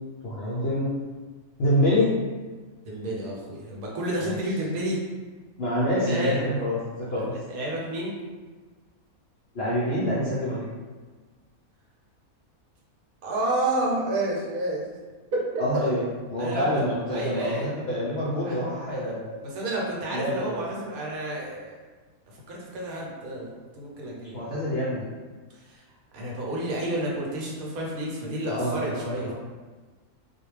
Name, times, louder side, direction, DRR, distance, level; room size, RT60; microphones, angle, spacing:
voice 1, 0.2-1.0 1.6-2.2 4.2-4.4 5.6-7.3 9.5-10.7 15.6-16.0 16.3-19.5 20.1-20.6 24.3-25.1 28.5-29.3, equal, 70° left, -8 dB, 0.6 m, -26 dB
voice 2, 2.8-5.0 6.0-6.4 7.2-8.1 13.2-14.8 15.3-15.9 16.4-16.8 17.1-17.7 18.4-18.6 18.9-19.2 19.4-21.8 22.3-24.5 25.5-25.8 26.1-29.3, right 1 dB, 75° right, -3 dB, 1.1 m, -30 dB
2.4 x 2.1 x 3.1 m, 1.4 s
omnidirectional pair, 1.6 m